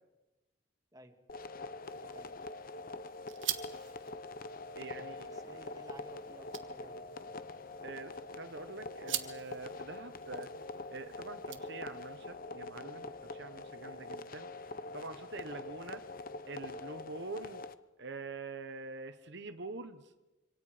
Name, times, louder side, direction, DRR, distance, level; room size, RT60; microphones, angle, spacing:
sound 1, 1.3-17.7, left 2 dB, 50° left, 0.9 m, -44 dB
sound 2, 1.8-12.2, right 12 dB, 85° right, 1.8 m, -46 dB
voice 1, 2.0-2.4 4.7-7.4 15.4-15.7, right 1 dB, 20° right, 4 dB, 2.2 m, -55 dB
voice 2, 4.8-5.3 7.8-10.5 10.9-14.5 14.9-16.0 16.5-17.6 18.0-20.0, right 3 dB, 65° right, 8 dB, 1.2 m, -45 dB
26.5 x 25.5 x 5.2 m, 1.1 s
head